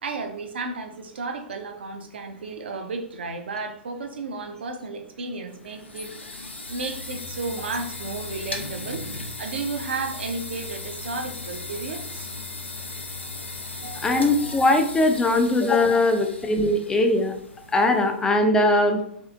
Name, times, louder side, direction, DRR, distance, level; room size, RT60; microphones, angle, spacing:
voice 1, 0.0-12.3 13.7-14.2 16.1-16.2, right 3 dB, 65° right, 6 dB, 0.5 m, -33 dB
sound 1, 5.5-18.3, left 3 dB, 80° left, 0.4 m, -37 dB
voice 2, 14.0-17.3 17.7-19.0, left 2 dB, 10° left, 5 dB, 0.4 m, -20 dB
3.5 x 2.4 x 2.4 m, 0.69 s
figure-of-eight pair, 105°, 6 cm